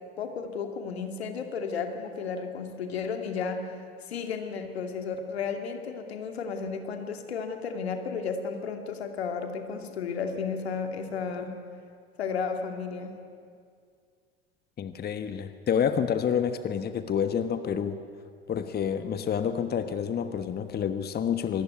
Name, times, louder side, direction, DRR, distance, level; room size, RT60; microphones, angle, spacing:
voice 1, 0.2-3.7 4.1-11.6 12.2-13.1, left 5 dB, 80° left, 6 dB, 2.6 m, -33 dB
voice 2, 14.8-18.0 18.5-21.6, left 8 dB, 30° left, 10 dB, 1.4 m, -28 dB
26.0 x 19.5 x 9.5 m, 2.2 s
figure-of-eight pair, 75°, 31 cm